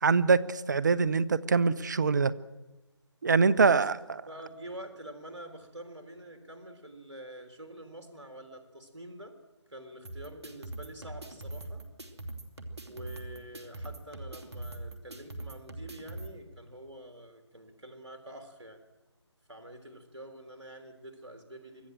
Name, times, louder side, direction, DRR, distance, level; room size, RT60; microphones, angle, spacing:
voice 1, 0.0-2.3 3.2-4.0, right 4 dB, 40° right, 19 dB, 0.8 m, -24 dB
voice 2, 4.1-9.4 9.7-11.8 12.8-18.8 19.5-21.9, right 1 dB, 80° right, 6 dB, 3.4 m, -47 dB
sound 1, 10.0-16.3, right 2 dB, 65° right, 2.9 m, -42 dB
24.5 x 15.0 x 7.8 m, 1.1 s
figure-of-eight pair, 160°, 15 cm